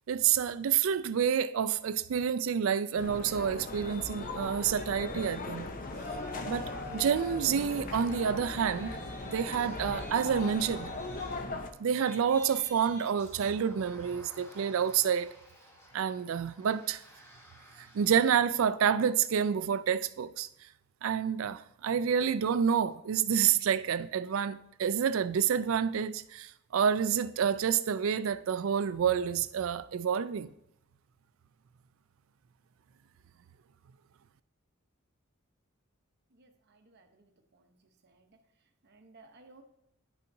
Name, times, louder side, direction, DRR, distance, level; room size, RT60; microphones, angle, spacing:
voice 1, 0.1-5.7 6.5-9.0 9.3-10.9 11.8-15.3 15.9-17.0 17.9-20.5 21.0-30.5, right 7 dB, 65° right, 0.3 m, -28 dB
sound 1, 3.0-11.7, left 2 dB, 40° left, 0.6 m, -39 dB
Yell, 5.9-7.6 7.9-18.3, equal, 10° left, 1.0 m, -49 dB
voice 2, 36.3-37.7 38.0-38.3 38.8-39.6, right 3 dB, 50° right, 0.8 m, -59 dB
10.5 x 5.6 x 2.7 m
head